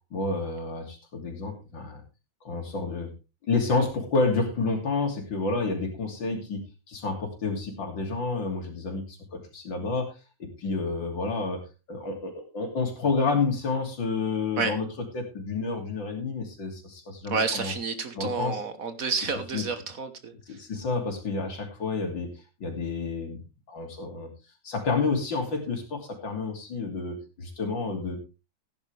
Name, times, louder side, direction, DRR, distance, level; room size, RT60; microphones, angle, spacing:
voice 1, 0.1-2.0 2.4-3.1 3.4-14.9 15.1-17.7 18.2-18.6 19.5-19.6 20.5-22.3 22.6-23.4 23.7-24.3 24.6-28.2, left 3 dB, 80° left, 4 dB, 3.6 m, -29 dB
voice 2, 17.3-20.6, right 5 dB, 50° right, 10 dB, 1.4 m, -30 dB
15.5 x 10.5 x 3.3 m, 0.27 s
omnidirectional pair, 2.0 m